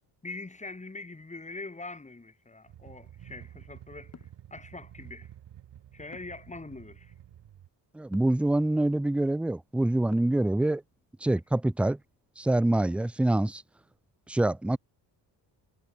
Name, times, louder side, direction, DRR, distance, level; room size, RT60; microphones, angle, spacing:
voice 1, 0.2-4.1 4.5-5.3 5.9-7.1, left 3 dB, 15° left, 3.5 m, -43 dB
sound 1, 2.7-7.7, right 11 dB, 65° right, 6.0 m, -50 dB
sound 2, 4.1-4.4 6.1-6.5 8.1-8.4 10.1-10.5, left 5 dB, 35° left, 4.7 m, -50 dB
voice 2, 7.9-10.8 11.2-12.0 12.4-13.6 14.3-14.8, right 1 dB, 5° right, 0.4 m, -25 dB
cardioid pair, 110°, 44 cm